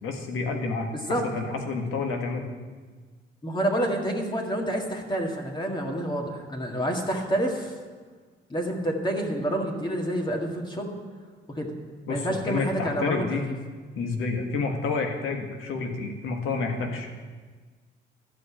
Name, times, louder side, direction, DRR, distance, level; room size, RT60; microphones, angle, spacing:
voice 1, 0.0-2.5 12.1-13.5 14.0-17.1, left 4 dB, 90° left, 3 dB, 1.6 m, -29 dB
voice 2, 0.9-1.2 3.4-7.7 8.5-10.9 11.5-11.7 12.1-13.5, right 1 dB, 20° left, 1 dB, 1.9 m, -28 dB
12.5 x 5.3 x 8.6 m, 1.4 s
cardioid pair, 90°, 20 cm